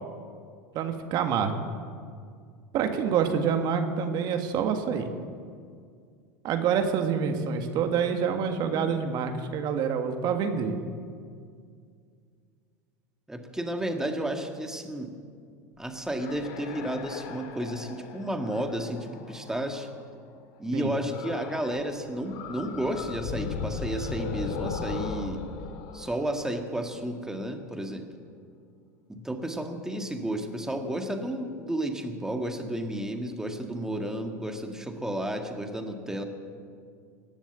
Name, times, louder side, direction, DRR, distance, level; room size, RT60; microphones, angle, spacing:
voice 1, 0.7-1.5 2.7-5.1 6.4-10.8 20.7-20.9, right 7 dB, 50° right, 6 dB, 1.5 m, -27 dB
voice 2, 13.3-15.1 15.8-19.9 20.6-25.4 25.9-28.1 29.1-36.2, right 1 dB, 5° right, 4 dB, 1.7 m, -32 dB
sound 1, 16.2-20.0 21.1-21.9 22.1-27.0, left 5 dB, 60° left, 1.8 m, -37 dB
18.5 x 7.2 x 8.0 m, 2.2 s
hypercardioid pair, 95°, 9 cm